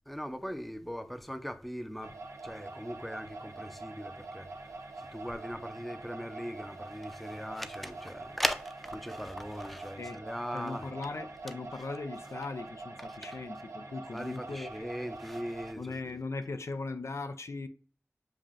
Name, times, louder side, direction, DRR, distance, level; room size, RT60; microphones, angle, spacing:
voice 1, 0.1-2.2 2.4-10.9 13.1-13.4 14.1-15.9, equal, ahead, 0.5 m, -39 dB
sound 1, 2.0-15.7, right 2 dB, 90° right, 0.5 m, -45 dB
voice 2, 10.5-14.9 15.8-17.7, left 3 dB, 75° left, 0.3 m, -39 dB
7.2 x 2.5 x 2.5 m
wide cardioid pair, 40°, 5 cm